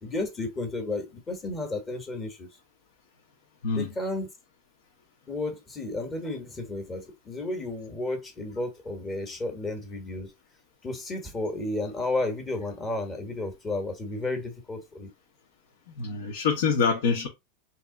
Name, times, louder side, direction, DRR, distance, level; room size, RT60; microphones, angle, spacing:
voice 1, 0.0-2.5 3.7-4.3 5.3-10.3 10.8-15.1, left 2 dB, 15° left, 1.1 m, -32 dB
voice 2, 3.6-3.9 16.0-17.3, left 5 dB, 75° left, 1.2 m, -25 dB
3.5 x 2.9 x 3.7 m
supercardioid pair, 160°, 0 cm